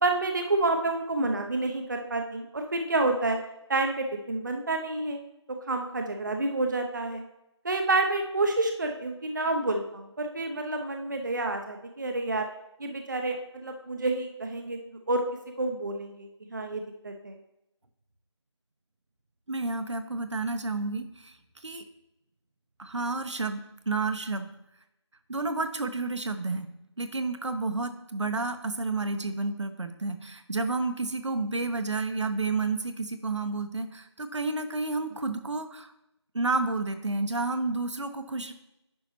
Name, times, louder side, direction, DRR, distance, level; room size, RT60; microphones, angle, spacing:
voice 1, 0.0-3.4 3.7-5.2 5.5-7.2 7.6-12.5 12.8-14.8 15.1-15.2 15.6-17.4, right 2 dB, 40° right, 4 dB, 0.6 m, -29 dB
voice 2, 19.5-21.3 21.6-21.8 22.8-24.5 25.3-26.7 27.0-35.9 36.3-38.5, right 3 dB, 75° right, 8 dB, 0.9 m, -30 dB
9.7 x 5.5 x 3.0 m, 0.86 s
figure-of-eight pair, 170°, 15 cm